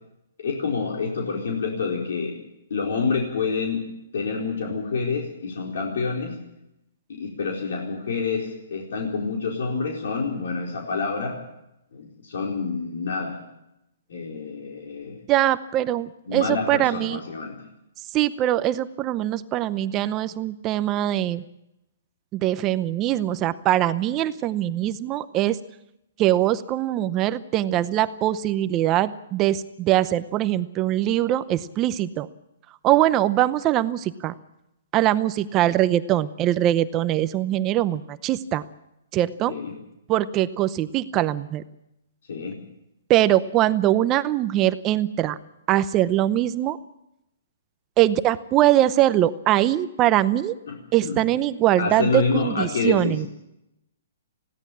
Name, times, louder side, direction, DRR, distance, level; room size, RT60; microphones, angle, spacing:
voice 1, 0.4-2.4 2.7-3.9 4.1-6.4 7.1-11.4 11.9-13.4 14.1-15.2 16.3-17.6 39.5-39.7 42.3-42.6 50.7-51.2 51.8-53.3, left 4 dB, 65° left, 1 dB, 4.5 m, -27 dB
voice 2, 15.3-17.2 18.1-21.4 22.3-25.6 26.2-32.3 32.8-34.3 34.9-38.6 39.1-39.5 40.1-41.6 43.1-45.4 45.7-46.8 48.0-50.6 50.9-53.3, right 13 dB, 20° right, 14 dB, 0.7 m, -22 dB
20.5 x 16.5 x 8.6 m, 0.86 s
hypercardioid pair, 170°, 0 cm